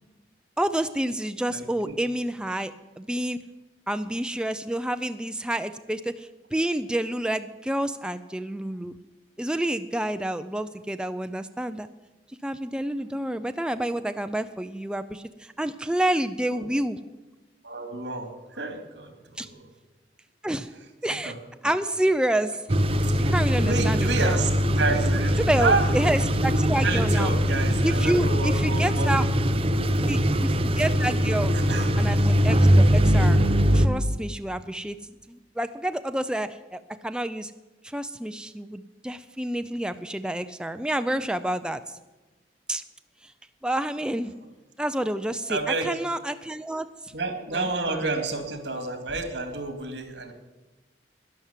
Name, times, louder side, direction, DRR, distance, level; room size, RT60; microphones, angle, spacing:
voice 1, 0.6-3.4 3.9-8.9 9.4-11.9 12.4-17.0 19.4-19.5 20.4-20.7 21.0-21.3 21.6-22.6 23.3-24.4 25.4-27.3 27.8-29.3 30.1-31.5 32.0-33.4 33.7-35.0 35.3-37.5 37.8-41.8 42.7-42.8 43.6-44.3 44.8-47.1 47.5-48.0, right 1 dB, 5° right, 9 dB, 0.4 m, -28 dB
voice 2, 1.5-1.9 16.5-16.7 17.6-18.3 18.6-19.6 21.2-21.4 23.0-25.9 26.5-29.3 31.5-31.9 45.5-45.9 47.1-50.3, right 3 dB, 80° right, 7 dB, 2.3 m, -29 dB
sound 1, 22.7-33.9, equal, 35° right, 0.8 m, -22 dB
12.5 x 11.0 x 7.3 m, 1.1 s
head